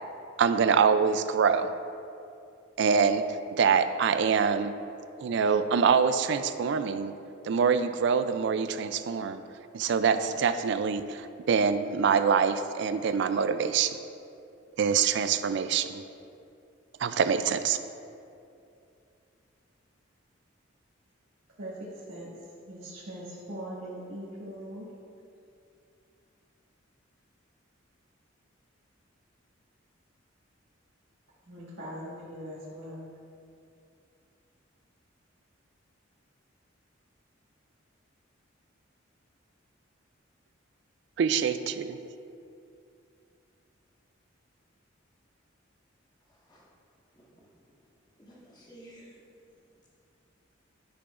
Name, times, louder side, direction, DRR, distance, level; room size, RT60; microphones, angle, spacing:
voice 1, 0.4-1.7 2.8-3.3 3.6-4.8 5.2-7.1 7.4-9.4 9.7-14.0 14.8-16.0 17.0-17.8 41.2-42.0, right 6 dB, 60° right, 0.3 m, -25 dB
voice 2, 21.6-22.3 22.7-24.9 31.4-33.1, right 1 dB, 80° right, 1.6 m, -41 dB
voice 3, 46.3-46.7 47.1-47.2 48.2-49.2, right 1 dB, 20° left, 1.4 m, -53 dB
11.0 x 6.1 x 2.5 m
head